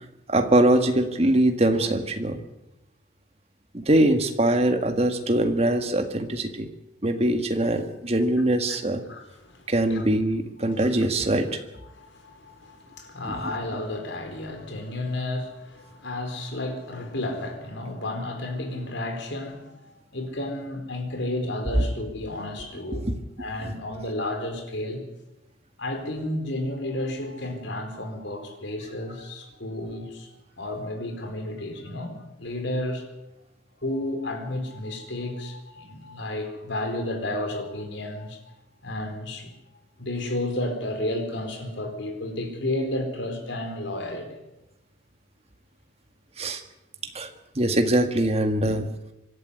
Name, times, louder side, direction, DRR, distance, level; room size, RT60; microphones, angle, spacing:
voice 1, 0.3-2.4 3.7-6.7 7.0-9.0 9.7-11.6 13.2-13.5 22.9-23.1 46.4-46.6 47.1-47.3 47.6-48.8, right 1 dB, 30° right, 1.8 m, -22 dB
voice 2, 9.0-10.0 10.7-10.9 11.9-23.1 23.4-25.1 25.8-32.1 32.4-33.1 33.8-38.4 38.8-39.5 40.0-44.3 48.6-48.8, left 1 dB, 60° left, 4.3 m, -32 dB
25.0 x 12.0 x 9.8 m
head